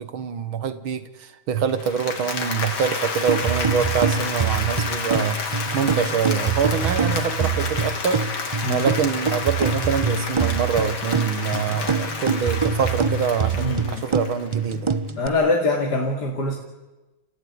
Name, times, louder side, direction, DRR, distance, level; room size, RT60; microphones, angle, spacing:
voice 1, 0.0-8.2 8.7-14.9, right 7 dB, 85° right, 12 dB, 2.1 m, -25 dB
Applause, 1.7-14.7, left 4 dB, 75° left, 3.2 m, -30 dB
sound 1, 3.3-15.3, right 5 dB, 45° right, 0.4 m, -25 dB
voice 2, 13.6-14.1 15.2-16.5, left 2 dB, 55° left, 0 dB, 2.9 m, -23 dB
30.0 x 15.5 x 9.6 m, 1.1 s
omnidirectional pair, 2.2 m